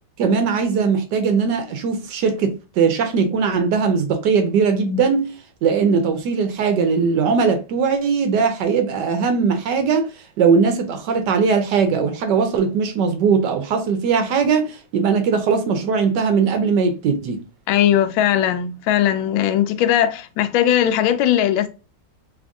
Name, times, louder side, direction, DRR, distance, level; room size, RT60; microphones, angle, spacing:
voice 1, 0.2-5.3 5.6-10.1 10.4-17.4, right 5 dB, 70° right, 1.1 m, -19 dB
voice 2, 17.7-21.7, left 10 dB, 80° left, 1.3 m, -18 dB
3.5 x 2.5 x 3.4 m
omnidirectional pair, 2.3 m